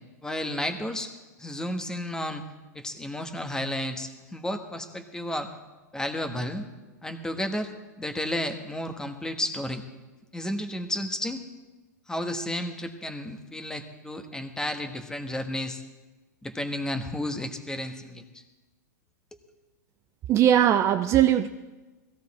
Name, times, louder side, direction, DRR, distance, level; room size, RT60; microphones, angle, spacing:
voice 1, 0.2-1.1 1.4-2.4 2.7-5.5 5.9-6.6 7.0-7.7 8.0-9.8 10.3-11.4 12.1-15.8 16.4-18.4, left 1 dB, 5° left, 7 dB, 1.3 m, -32 dB
voice 2, 20.3-21.5, right 11 dB, 30° right, 10 dB, 0.5 m, -20 dB
16.5 x 15.5 x 4.2 m, 1.2 s
hypercardioid pair, 110°, 10 cm